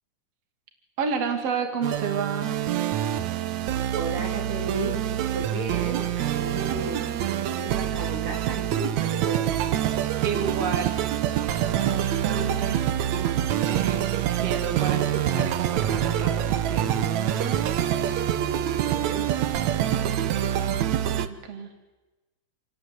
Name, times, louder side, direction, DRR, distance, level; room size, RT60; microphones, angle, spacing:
voice 1, 1.0-2.5 10.2-11.0 11.3-17.0 21.2-21.7, right 6 dB, 50° right, 4 dB, 3.5 m, -31 dB
sound 1, 1.8-21.3, right 11 dB, 70° right, 2.2 m, -26 dB
voice 2, 3.9-5.0 5.3-9.7 18.8-19.3, right 3 dB, 85° right, 2 dB, 4.9 m, -34 dB
27.5 x 19.5 x 8.1 m, 1.1 s
omnidirectional pair, 3.6 m